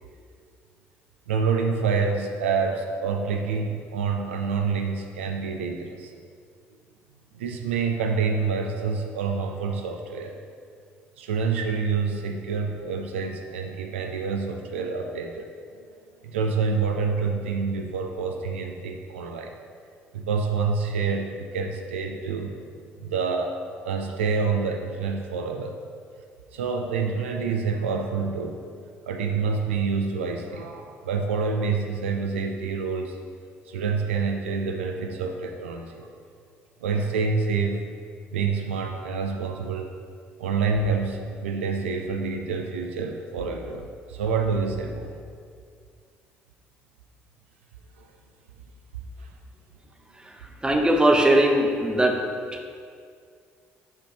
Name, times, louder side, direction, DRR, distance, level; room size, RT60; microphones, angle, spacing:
voice 1, 1.3-6.1 7.3-10.3 11.2-15.5 16.2-19.5 20.1-22.6 23.0-23.6 23.8-25.7 26.5-28.6 29.1-33.2 33.7-36.1 36.8-37.8 38.3-39.9 40.4-43.8 44.1-45.1 48.0-48.1 49.2-49.3, right 5 dB, 90° right, 3 dB, 0.4 m, -27 dB
voice 2, 50.6-52.2, right 1 dB, 15° right, 2 dB, 1.0 m, -19 dB
6.2 x 5.0 x 5.0 m, 2.2 s
hypercardioid pair, 55°, 6 cm